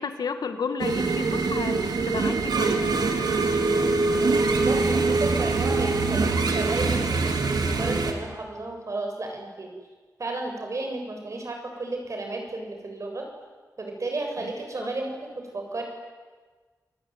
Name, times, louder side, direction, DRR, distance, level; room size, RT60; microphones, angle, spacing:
voice 1, 0.0-2.9 14.8-14.9, left 5 dB, 90° left, 8 dB, 2.1 m, -32 dB
sound 1, 0.8-8.1, right 3 dB, 80° right, 3.2 m, -23 dB
voice 2, 4.5-9.7 10.2-13.2 13.8-15.8, right 2 dB, 50° right, 2 dB, 7.3 m, -33 dB
28.5 x 19.5 x 9.6 m, 1.4 s
wide cardioid pair, 110°, 7 cm